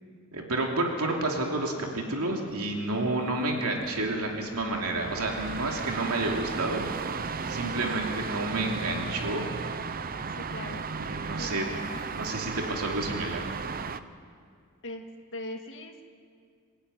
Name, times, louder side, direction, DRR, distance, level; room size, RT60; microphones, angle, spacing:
voice 1, 0.3-6.8 7.5-9.4 11.0-11.6 12.1-13.4, right 2 dB, 75° right, 1 dB, 2.9 m, -30 dB
sound 1, 2.5-14.0, right 5 dB, 40° right, 0.8 m, -35 dB
voice 2, 7.6-7.9 10.3-11.0 11.4-12.0 14.8-15.0 15.3-16.0, left 1 dB, 60° left, 4 dB, 2.2 m, -40 dB
26.0 x 16.0 x 9.6 m, 2.2 s
head